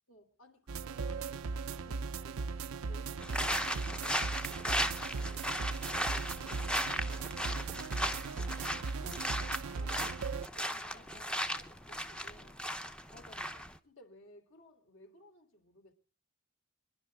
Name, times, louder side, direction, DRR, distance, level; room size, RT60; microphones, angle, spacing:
voice 1, 0.1-2.6 2.9-6.4 6.7-8.7 9.5-12.7 13.8-15.9, left 1 dB, 60° left, 3.2 m, -60 dB
sound 1, 0.7-10.5, right 4 dB, 85° right, 0.6 m, -38 dB
voice 2, 1.8-2.1 4.8-5.0 6.5-6.8 9.0-10.5 10.7-11.8 13.1-13.7, left 1 dB, 45° left, 1.7 m, -58 dB
sound 2, 3.2-13.8, equal, 5° left, 0.7 m, -36 dB
26.5 x 11.0 x 3.5 m
head